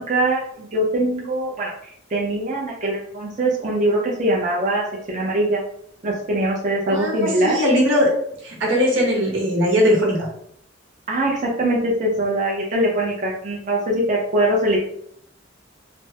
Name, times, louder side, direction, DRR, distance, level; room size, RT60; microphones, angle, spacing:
voice 1, 0.1-5.6 6.0-7.6 11.1-14.8, right 1 dB, 40° right, -3 dB, 0.5 m, -22 dB
voice 2, 6.9-8.1 8.4-10.3, equal, 85° right, -3 dB, 1.1 m, -19 dB
3.3 x 2.0 x 2.7 m, 0.68 s
head